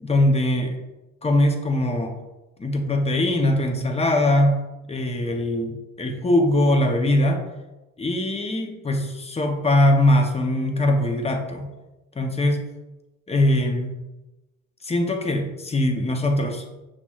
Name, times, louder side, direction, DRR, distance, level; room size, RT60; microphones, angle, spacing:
voice 1, 0.0-0.8 1.2-2.1 2.6-4.6 4.9-7.4 8.0-11.7 12.2-12.6 13.3-13.9 14.8-16.6, left 1 dB, 20° left, 4 dB, 0.6 m, -21 dB
5.8 x 3.0 x 2.3 m, 1.0 s
cardioid pair, 90°, 30 cm